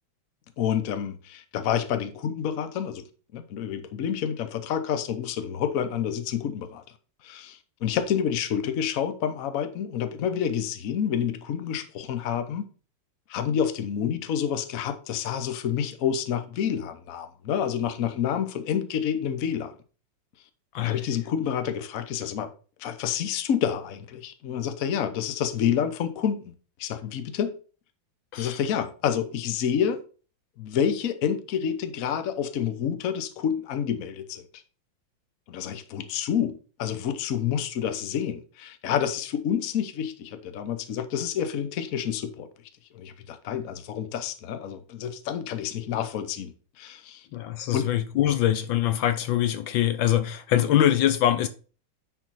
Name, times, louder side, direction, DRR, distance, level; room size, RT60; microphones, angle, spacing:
voice 1, 0.6-3.0 3.3-6.8 7.2-12.7 13.3-19.8 20.8-22.5 22.8-26.5 26.8-27.6 28.4-30.0 30.6-34.4 35.5-42.5 42.9-47.3 47.7-47.9, left 8 dB, 55° left, 1.1 m, -28 dB
voice 2, 47.3-51.5, left 12 dB, 75° left, 1.4 m, -23 dB
9.7 x 4.7 x 4.2 m
omnidirectional pair, 2.2 m